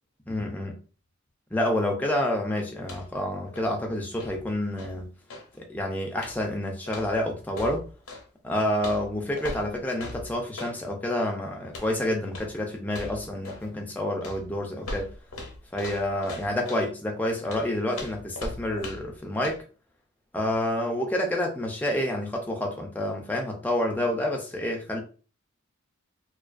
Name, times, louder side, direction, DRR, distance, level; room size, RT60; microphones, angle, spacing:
voice 1, 0.3-0.7 1.5-5.1 5.6-7.8 8.4-15.1 15.7-19.6 20.3-25.0, left 1 dB, 10° left, 0.4 m, -28 dB
sound 1, 2.8-3.2 3.5-5.6 6.1-6.5 6.9-8.3 8.8-10.8 11.6-12.0 12.3-12.6 12.9-13.7 14.2-16.9 17.4-19.2 19.4-19.6, left 2 dB, 80° left, 0.6 m, -40 dB
2.3 x 2.3 x 2.4 m
head